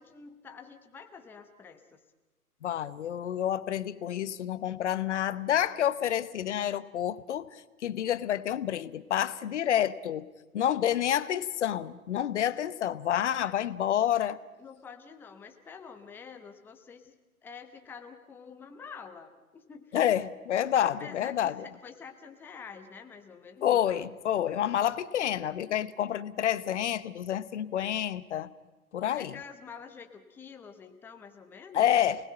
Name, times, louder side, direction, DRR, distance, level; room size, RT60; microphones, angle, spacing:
voice 1, 0.0-2.0 13.2-13.6 14.6-17.2 17.4-20.0 20.8-24.1 29.1-32.0, left 6 dB, 5° left, 5 dB, 0.8 m, -47 dB
voice 2, 2.6-7.5 7.8-10.3 10.5-14.4 19.9-21.5 23.6-28.5 28.9-29.3 31.7-32.2, left 10 dB, 50° left, 15 dB, 1.0 m, -28 dB
28.0 x 19.5 x 5.6 m, 1.2 s
hypercardioid pair, 135°, 45 cm